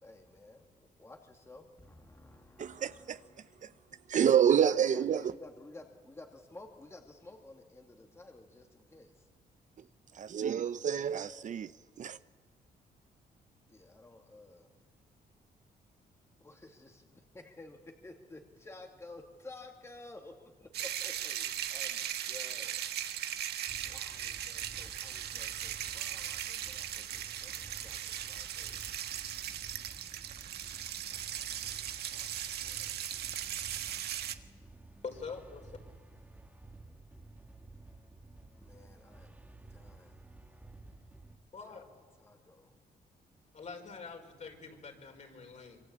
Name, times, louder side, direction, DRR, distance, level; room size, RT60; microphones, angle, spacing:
voice 1, 0.0-4.1 4.5-9.3 10.8-11.5 13.7-14.7 16.4-22.9 23.2-23.4 23.8-28.9 32.1-33.0 38.5-39.4 39.7-40.2 41.7-42.7, left 2 dB, 15° left, 2.1 m, -53 dB
voice 2, 2.6-3.2 3.6-3.7 4.1-5.2 10.1-11.7 12.0-12.2, right 8 dB, 50° right, 0.7 m, -28 dB
sound 1, 20.7-34.3, right 10 dB, 90° right, 1.5 m, -38 dB
sound 2, 23.7-41.4, right 2 dB, 10° right, 2.1 m, -54 dB
voice 3, 35.0-35.7 41.5-41.9 43.5-45.8, left 5 dB, 45° left, 5.1 m, -45 dB
25.5 x 24.5 x 8.7 m
cardioid pair, 125°, 16 cm